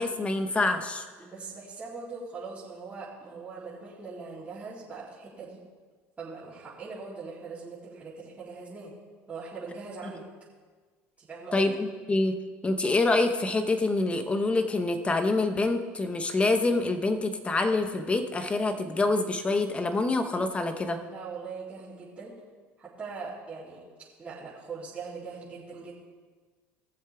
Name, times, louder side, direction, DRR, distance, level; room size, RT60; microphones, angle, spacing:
voice 1, 0.0-1.0 11.5-12.4 12.6-21.0, left 2 dB, 20° left, 7 dB, 1.0 m, -26 dB
voice 2, 1.2-5.6 6.2-8.9 9.3-10.2 11.2-11.7 21.0-22.4 22.8-23.8 24.2-25.9, right 4 dB, 20° right, -11 dB, 3.4 m, -41 dB
17.5 x 7.4 x 3.5 m, 1.5 s
supercardioid pair, 110°, 6 cm